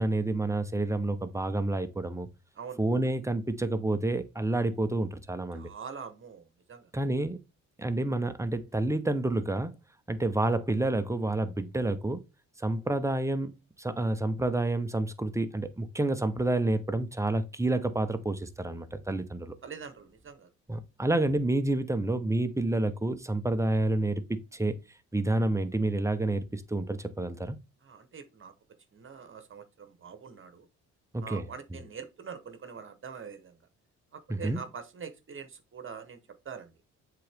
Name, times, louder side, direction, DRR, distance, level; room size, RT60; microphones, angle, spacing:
voice 1, 0.0-2.3 2.8-5.7 6.9-7.4 7.8-9.7 10.1-12.2 12.6-13.5 13.8-19.5 20.7-24.8 25.1-27.6 31.1-31.4 34.3-34.6, right 2 dB, 10° right, 0.8 m, -29 dB
voice 2, 5.5-6.9 19.6-20.5 27.8-28.5 28.9-30.7 31.2-33.6 34.1-36.2 36.4-36.7, right 6 dB, 40° right, 1.1 m, -44 dB
7.5 x 3.9 x 3.5 m
cardioid pair, 90°, 30 cm